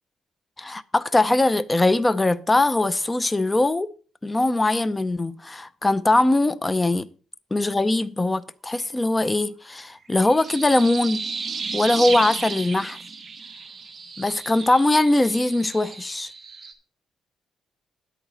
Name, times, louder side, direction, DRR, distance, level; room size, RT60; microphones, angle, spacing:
voice 1, 0.6-3.9 4.2-7.1 7.5-11.3 11.7-13.0 14.2-16.3, left 2 dB, 15° left, 0.6 m, -21 dB
sound 1, 10.1-16.7, right 4 dB, 30° right, 1.5 m, -33 dB
10.0 x 8.9 x 4.2 m
cardioid pair, 110°, 0 cm